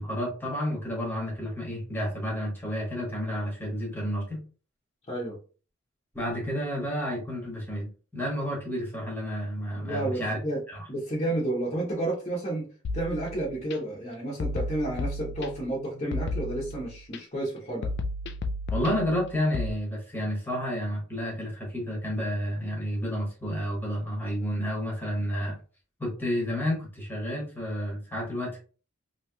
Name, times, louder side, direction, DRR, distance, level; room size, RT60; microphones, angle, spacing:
voice 1, 0.0-4.4 6.1-10.4 10.7-10.8 18.7-25.6 26.0-28.6, equal, 10° left, -2 dB, 1.1 m, -30 dB
voice 2, 5.1-5.4 9.8-10.6 10.9-12.7 12.9-17.9, right 1 dB, 30° left, -6 dB, 0.9 m, -31 dB
sound 1, 12.8-13.8 14.4-15.7 16.1-17.2 17.8-19.7, left 2 dB, 50° left, 0.3 m, -33 dB
3.0 x 3.0 x 2.2 m, 0.37 s
head